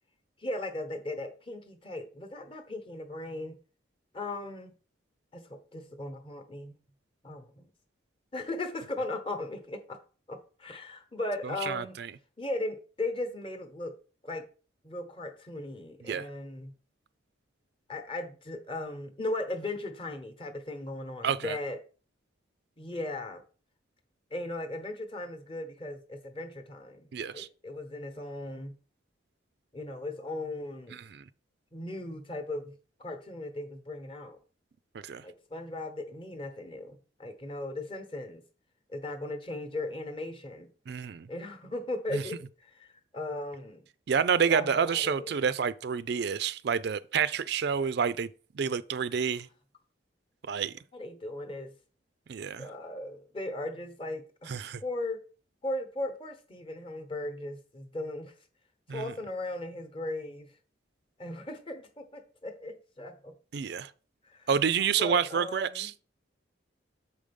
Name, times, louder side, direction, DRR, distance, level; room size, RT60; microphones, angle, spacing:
voice 1, 0.4-3.6 4.1-4.8 5.3-6.7 7.2-7.7 8.3-10.0 10.3-12.0 12.4-13.9 14.2-14.5 14.8-16.7 17.9-21.8 22.8-23.4 24.3-28.7 29.7-31.0 31.7-34.4 35.2-38.4 38.9-40.7 41.3-43.8 44.4-45.3 50.9-51.8 52.6-54.5 54.8-55.2 55.6-58.3 58.9-60.5 61.2-63.3 64.2-64.5 64.8-65.9, left 2 dB, 30° left, 1.0 m, -37 dB
voice 2, 11.6-12.1 16.1-16.3 21.2-21.6 27.1-27.5 31.1-31.2 35.0-35.2 40.9-41.3 42.1-42.2 44.1-48.3 48.5-49.5 50.5-50.7 52.3-52.7 54.5-54.8 58.9-59.1 63.5-63.9 64.5-65.9, right 7 dB, 60° right, 0.4 m, -28 dB
6.9 x 5.1 x 5.3 m
head